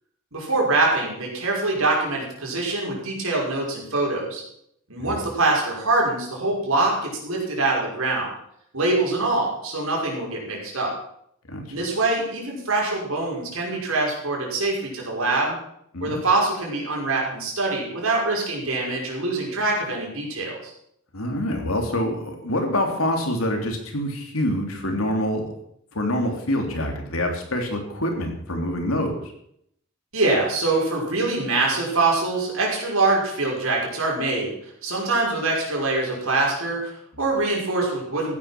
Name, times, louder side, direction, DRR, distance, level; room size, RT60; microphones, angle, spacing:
voice 1, 0.3-4.4 4.9-8.3 8.7-10.9 11.7-15.6 16.0-20.7 30.1-38.4, right 2 dB, 90° right, -2 dB, 5.6 m, -24 dB
voice 2, 21.1-25.5 25.9-29.3, left 1 dB, 85° left, 3 dB, 3.2 m, -26 dB
15.0 x 9.8 x 6.1 m, 0.71 s
head